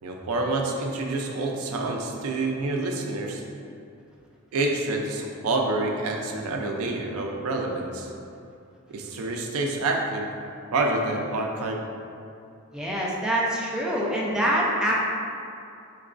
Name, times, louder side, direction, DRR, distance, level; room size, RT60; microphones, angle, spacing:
voice 1, 0.0-3.4 4.5-8.1 8.9-10.3 10.7-11.8, right 2 dB, 75° right, 1 dB, 0.4 m, -27 dB
voice 2, 12.7-15.1, right 1 dB, 5° right, -5 dB, 0.4 m, -25 dB
4.6 x 2.2 x 2.4 m, 2.5 s
head